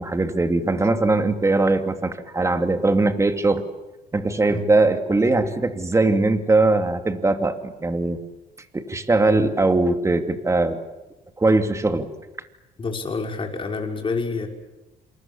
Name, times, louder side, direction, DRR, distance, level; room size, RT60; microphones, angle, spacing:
voice 1, 0.0-3.6 4.1-8.2 8.7-10.8 11.4-12.1, right 2 dB, 15° right, 7 dB, 2.7 m, -20 dB
voice 2, 12.8-14.5, left 4 dB, 30° left, 2 dB, 5.9 m, -28 dB
28.0 x 27.5 x 7.3 m, 1.0 s
cardioid pair, 110°, 17 cm